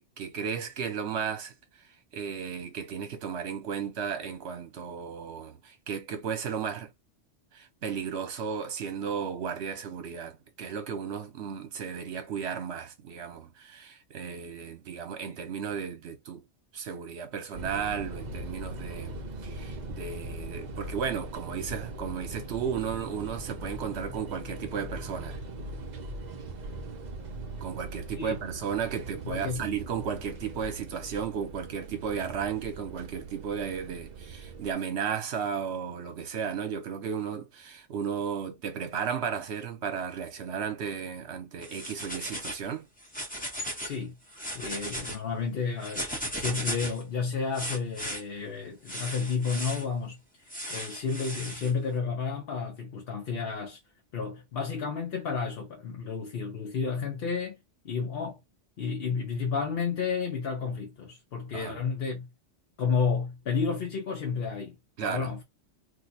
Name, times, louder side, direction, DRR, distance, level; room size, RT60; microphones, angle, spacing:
voice 1, 0.0-1.5 2.1-6.9 7.5-16.4 16.7-25.4 27.6-42.9 61.5-61.8 65.0-65.3, right 7 dB, 65° right, 1.1 m, -34 dB
sound 1, 17.5-34.7, right 2 dB, 45° right, 0.6 m, -40 dB
voice 2, 29.2-29.8 43.8-44.2 44.5-46.1 46.4-53.8 54.1-57.6 57.8-58.4 58.8-62.3 62.8-65.4, left 5 dB, 60° left, 0.9 m, -31 dB
sound 2, 41.6-42.6 43.0-44.0 44.3-45.2 45.8-47.0 47.5-48.2 48.9-49.8 50.5-51.7, equal, 10° left, 0.7 m, -36 dB
2.6 x 2.3 x 4.0 m
omnidirectional pair, 1.2 m